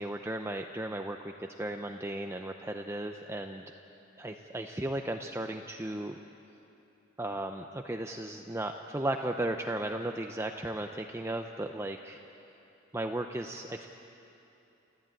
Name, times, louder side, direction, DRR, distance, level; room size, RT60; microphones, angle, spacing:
voice 1, 0.0-3.6 4.2-6.2 7.2-12.2 12.9-13.9, right 1 dB, 15° right, 4 dB, 0.6 m, -35 dB
29.5 x 13.5 x 9.1 m, 3.0 s
head